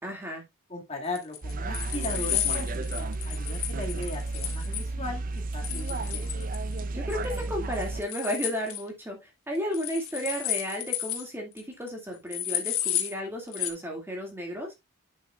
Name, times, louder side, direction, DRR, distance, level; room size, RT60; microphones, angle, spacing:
voice 1, 0.0-0.4 6.9-14.7, equal, 10° right, 2.0 m, -33 dB
voice 2, 0.7-6.5, left 1 dB, 30° left, 1.9 m, -38 dB
sound 1, 1.2-4.8 5.6-6.8 7.1-7.4 7.7-8.8 9.7-11.3 11.6-11.7 11.9-12.0 12.3-13.1 13.5-13.7, left 11 dB, 75° left, 1.6 m, -32 dB
sound 2, 1.4-8.0, right 2 dB, 40° right, 0.5 m, -32 dB
8.6 x 7.2 x 2.3 m
head